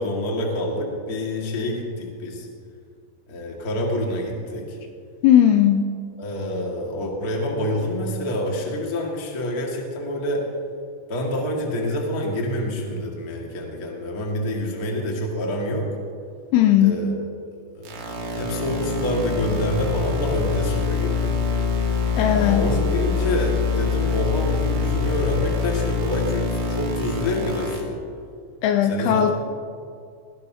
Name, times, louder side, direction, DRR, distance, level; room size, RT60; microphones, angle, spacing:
voice 1, 0.0-2.5 3.3-4.8 6.2-10.5 11.1-15.9 16.8-17.2 17.7-18.0 18.3-21.4 22.3-28.0 28.8-29.3, left 1 dB, 40° left, -1 dB, 1.3 m, -27 dB
voice 2, 5.2-5.9 16.5-17.0 22.2-22.7 28.6-29.3, left 10 dB, 85° left, 6 dB, 2.4 m, -17 dB
sound 1, 17.9-27.8, left 5 dB, 70° right, 3.6 m, -24 dB
20.0 x 17.0 x 2.9 m, 2.3 s
omnidirectional pair, 5.1 m